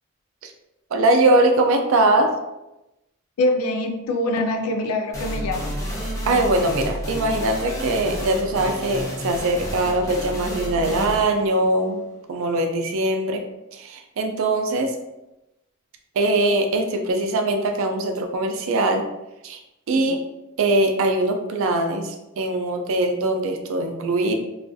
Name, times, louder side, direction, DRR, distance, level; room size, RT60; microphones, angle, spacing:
voice 1, 0.9-2.3 6.3-12.0 12.3-13.4 13.7-14.9 16.2-19.1 19.4-19.6 19.9-20.2 20.6-24.3, right 2 dB, 65° right, 4 dB, 0.4 m, -21 dB
voice 2, 3.4-5.7 19.9-20.2, left 1 dB, 90° left, 4 dB, 0.4 m, -24 dB
sound 1, 5.1-12.6, equal, 15° left, 0.5 m, -31 dB
2.6 x 2.4 x 2.3 m, 0.94 s
head